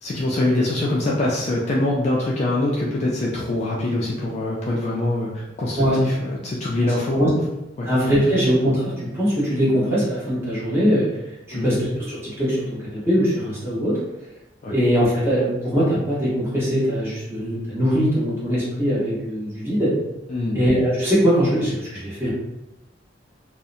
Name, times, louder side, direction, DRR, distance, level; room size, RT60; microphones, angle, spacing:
voice 1, 0.0-7.4 7.8-7.9 11.5-11.7 14.6-14.7 20.3-20.6, left 2 dB, 40° left, -3 dB, 0.3 m, -24 dB
voice 2, 6.8-7.3 7.8-8.8 9.1-11.1 11.5-14.0 14.7-19.9 20.5-22.3, equal, 15° right, -9 dB, 0.9 m, -21 dB
2.7 x 2.0 x 2.4 m, 0.94 s
head